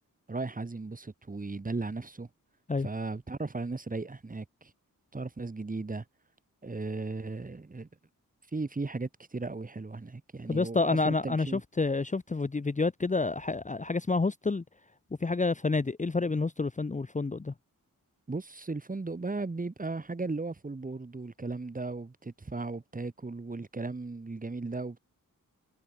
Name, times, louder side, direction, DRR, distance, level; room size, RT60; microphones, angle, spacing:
voice 1, 0.3-2.3 2.8-4.7 5.1-6.0 6.6-7.9 8.5-11.6 18.3-25.0, right 3 dB, 25° right, 1.9 m, -36 dB
voice 2, 10.5-14.6 15.2-17.5, left 3 dB, 20° left, 0.9 m, -29 dB
wide cardioid pair, 145°, 35 cm